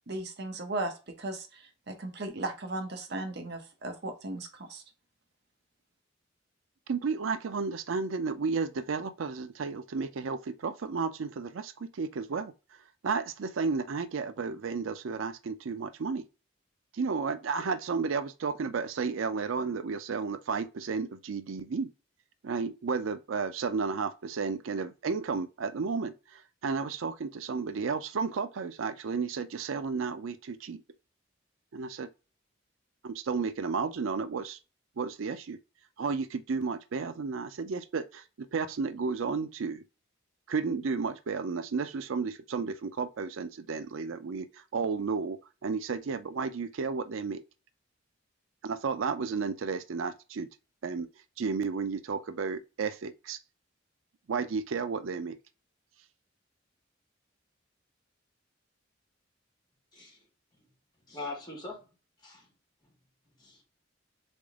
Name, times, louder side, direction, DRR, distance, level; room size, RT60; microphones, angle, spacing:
voice 1, 0.1-4.8, right 2 dB, 55° right, 0.9 m, -36 dB
voice 2, 6.9-12.5 13.0-16.2 16.9-21.9 22.4-30.8 31.7-32.1 33.0-34.6 35.0-35.6 36.0-39.8 40.5-47.4 48.6-50.5 50.8-51.1 51.4-53.4 54.3-55.4, right 5 dB, 85° right, 0.5 m, -32 dB
voice 3, 59.9-60.2 60.5-60.6 61.1-61.9 62.2-62.5 62.8-62.9 63.4-63.6, left 2 dB, 20° left, 2.2 m, -42 dB
3.8 x 3.6 x 3.5 m
head